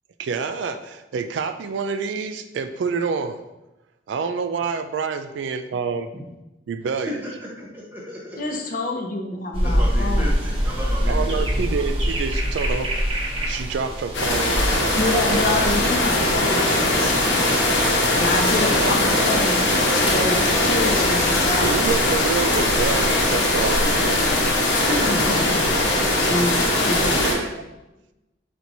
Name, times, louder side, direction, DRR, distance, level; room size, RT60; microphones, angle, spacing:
voice 1, 0.2-3.4 4.1-6.1 6.7-7.2 11.1-15.6 18.7-19.3 21.6-24.4 27.2-27.6, right 5 dB, 85° right, 8 dB, 0.3 m, -28 dB
voice 2, 7.1-8.4 9.6-11.4 18.5-19.1 24.9-25.5, equal, 10° right, -4 dB, 1.1 m, -33 dB
voice 3, 8.4-10.3 15.0-17.5 18.1-19.6 19.9-21.9 25.0-25.7 26.3-27.2, left 2 dB, 50° left, 2 dB, 0.6 m, -27 dB
sound 1, 9.5-15.9, equal, 30° right, 0.7 m, -24 dB
sound 2, 14.1-27.3, left 1 dB, 85° left, 1.0 m, -20 dB
4.5 x 4.3 x 2.7 m, 0.99 s
head